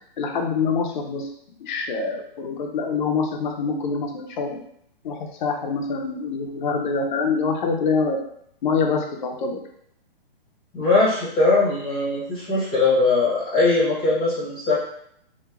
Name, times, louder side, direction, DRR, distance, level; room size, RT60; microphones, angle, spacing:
voice 1, 0.2-1.3 1.6-4.6 5.0-8.2 8.6-9.6, left 4 dB, 55° left, 2 dB, 0.5 m, -25 dB
voice 2, 10.7-14.8, left 3 dB, 15° left, -9 dB, 0.9 m, -20 dB
2.8 x 2.2 x 2.3 m, 0.70 s
hypercardioid pair, 150°, 29 cm